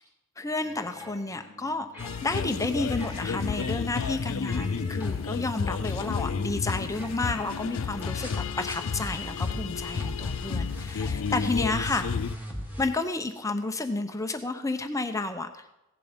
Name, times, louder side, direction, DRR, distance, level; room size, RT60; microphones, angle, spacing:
voice 1, 0.4-1.9 2.2-8.3 8.6-12.2 12.8-15.6, left 2 dB, 15° left, 7 dB, 0.9 m, -31 dB
sound 1, 0.6-12.9, equal, 10° right, 3.0 m, -41 dB
sound 2, 2.0-12.3, left 6 dB, 65° left, 0.4 m, -31 dB
16.5 x 11.0 x 5.2 m, 0.94 s
head